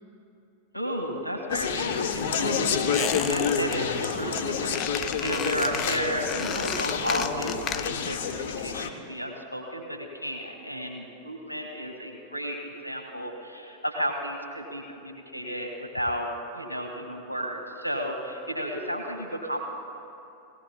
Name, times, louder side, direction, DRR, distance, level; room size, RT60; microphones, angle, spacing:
voice 1, 0.7-12.6 12.8-19.7, equal, 90° left, 1 dB, 1.5 m, -33 dB
Conversation, 1.5-8.9, left 6 dB, 55° left, 0.8 m, -29 dB
Squeak, 2.9-3.8 4.0-4.4 4.7-8.1 8.4-8.5, left 9 dB, 30° left, 0.5 m, -33 dB
18.0 x 17.5 x 2.3 m, 2.7 s
figure-of-eight pair, 90°, 0 cm